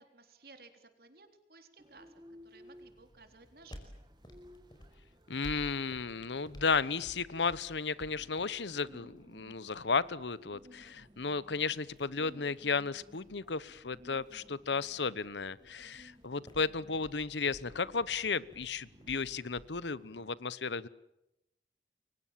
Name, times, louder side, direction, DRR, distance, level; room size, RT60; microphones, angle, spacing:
voice 1, 0.0-2.1 2.4-3.9, right 3 dB, 55° right, 7 dB, 3.8 m, -57 dB
sound 1, 1.8-20.3, equal, 25° right, 1.6 m, -60 dB
sound 2, 2.8-19.8, equal, 25° left, 4.8 m, -56 dB
voice 2, 5.3-20.9, left 4 dB, 85° left, 19 dB, 1.0 m, -34 dB
30.0 x 23.0 x 7.5 m, 0.87 s
head